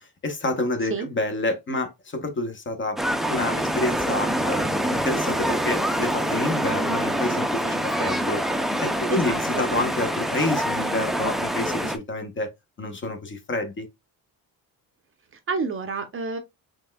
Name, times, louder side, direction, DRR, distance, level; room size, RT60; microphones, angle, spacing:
voice 1, 0.0-3.0 3.3-8.4 8.8-12.5 12.8-13.9, left 2 dB, 30° left, 0.9 m, -28 dB
sound 1, 3.0-12.0, right 1 dB, ahead, 0.3 m, -25 dB
voice 2, 9.1-9.7 15.5-16.4, right 5 dB, 35° right, 0.7 m, -29 dB
5.4 x 3.5 x 2.2 m
cardioid pair, 140°, 38 cm